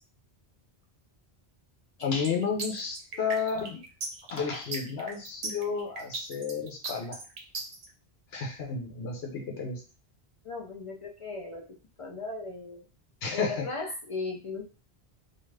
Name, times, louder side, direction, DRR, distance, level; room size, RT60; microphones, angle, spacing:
voice 1, 2.0-3.8 4.3-7.2 8.3-9.8 13.2-13.7, left 5 dB, 70° left, 1 dB, 0.9 m, -32 dB
sound 1, 2.2-7.9, right 3 dB, 70° right, 0.9 m, -37 dB
voice 2, 10.4-12.9 13.3-14.6, left 3 dB, 55° left, -1 dB, 0.3 m, -37 dB
2.4 x 2.3 x 3.2 m, 0.34 s
omnidirectional pair, 1.1 m